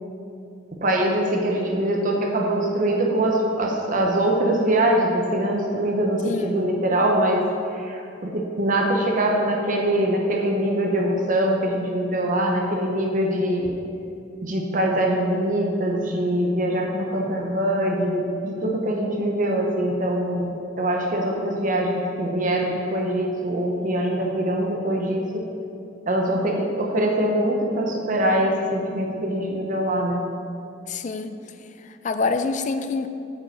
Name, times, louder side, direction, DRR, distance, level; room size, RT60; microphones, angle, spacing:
voice 1, 0.8-7.4 7.7-13.7 14.4-25.4 26.1-30.2, right 1 dB, 45° right, 0 dB, 0.9 m, -23 dB
voice 2, 6.2-6.6 30.9-31.4 31.8-33.1, left 4 dB, 40° left, 10 dB, 0.4 m, -26 dB
8.5 x 5.4 x 6.2 m, 2.6 s
head